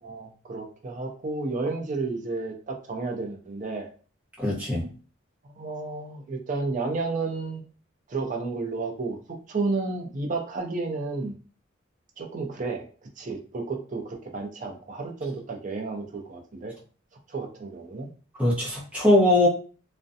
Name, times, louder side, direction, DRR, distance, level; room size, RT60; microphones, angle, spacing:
voice 1, 0.0-3.9 5.5-7.6 8.1-9.2 9.5-11.3 12.2-12.9 13.2-16.7 17.3-18.1, right 3 dB, 40° right, 3 dB, 0.5 m, -31 dB
voice 2, 4.4-4.9 18.4-19.5, left 1 dB, 5° right, -6 dB, 0.8 m, -21 dB
2.4 x 2.1 x 2.6 m, 0.39 s
head